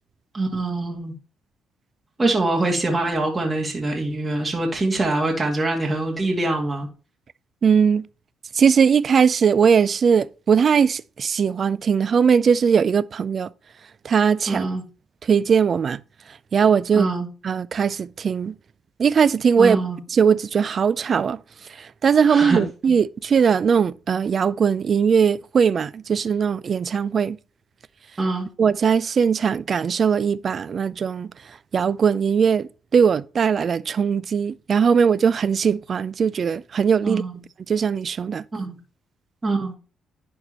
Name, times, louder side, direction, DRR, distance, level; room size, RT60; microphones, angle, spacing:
voice 1, 0.3-1.1 2.2-6.9 14.5-14.8 16.9-17.3 19.6-20.0 22.2-22.6 28.2-28.5 37.0-37.4 38.5-38.8 39.4-39.8, right 2 dB, 25° right, 2.3 m, -24 dB
voice 2, 7.6-8.1 8.5-13.5 14.0-14.7 15.2-16.0 16.5-17.1 17.4-18.5 19.0-19.8 20.1-21.4 21.8-27.4 28.6-31.3 31.7-37.2 37.7-38.4, right 6 dB, 50° right, 0.4 m, -19 dB
11.0 x 4.4 x 3.0 m
cardioid pair, 90°, 0 cm